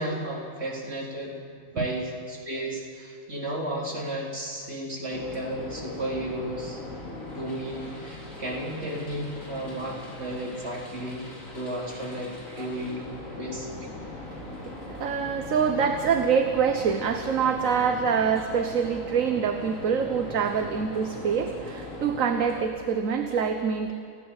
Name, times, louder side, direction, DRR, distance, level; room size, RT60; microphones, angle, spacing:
voice 1, 0.0-1.3 1.7-6.8 7.3-11.3 11.5-13.1 13.4-13.7, right 1 dB, 50° right, -3 dB, 4.5 m, -33 dB
sound 1, 5.1-22.6, left 2 dB, 70° left, 4.3 m, -40 dB
voice 2, 14.2-23.9, right 6 dB, 75° right, 6 dB, 1.5 m, -26 dB
30.0 x 16.5 x 8.2 m, 2.4 s
omnidirectional pair, 1.4 m